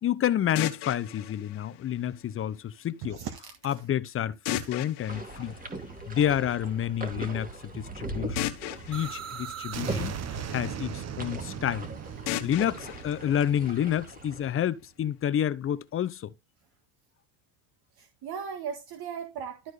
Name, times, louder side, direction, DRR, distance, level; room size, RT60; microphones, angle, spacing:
voice 1, 0.0-3.2 3.6-5.5 6.1-7.5 7.7-8.4 8.9-10.2 10.5-11.9 12.4-16.3, left 10 dB, 25° left, 0.7 m, -29 dB
sound 1, 0.6-2.6 4.5-6.4 8.4-10.6 12.3-14.3, left 14 dB, 55° left, 1.3 m, -37 dB
voice 2, 3.0-3.8 4.5-4.7 18.0-19.7, right 7 dB, 50° right, 1.9 m, -38 dB
sound 2, 5.1-14.5, right 2 dB, 15° right, 2.2 m, -40 dB
sound 3, 8.9-14.6, right 8 dB, 30° right, 1.1 m, -39 dB
12.5 x 4.4 x 3.3 m
supercardioid pair, 105°, 48 cm